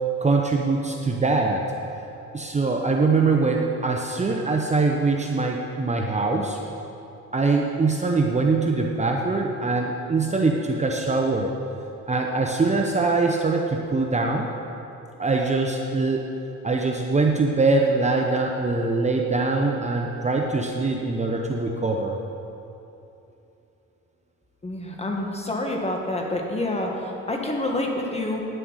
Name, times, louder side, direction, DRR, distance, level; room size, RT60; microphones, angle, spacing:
voice 1, 0.2-1.6 2.3-6.6 7.3-11.5 12.1-14.5 15.2-16.2 16.6-22.2, right 3 dB, 25° right, 1 dB, 0.8 m, -23 dB
voice 2, 24.6-28.4, left 1 dB, 20° left, 1 dB, 1.7 m, -27 dB
9.6 x 7.8 x 6.3 m, 2.9 s
cardioid pair, 90°, 30 cm